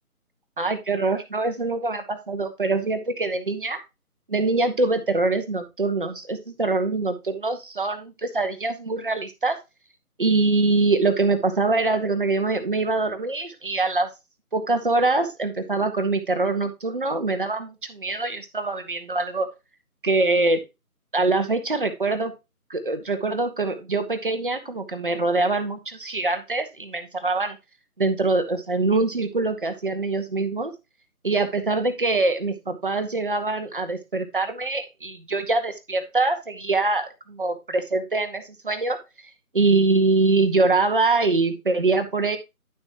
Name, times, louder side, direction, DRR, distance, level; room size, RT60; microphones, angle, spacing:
voice 1, 0.6-3.8 4.3-9.6 10.2-14.1 14.5-19.5 20.0-20.6 21.1-22.3 22.7-27.6 28.0-30.7 31.2-39.0 39.5-42.4, right 3 dB, 35° right, 8 dB, 1.6 m, -24 dB
11.5 x 7.3 x 3.0 m, 0.24 s
figure-of-eight pair, 160°, 45 cm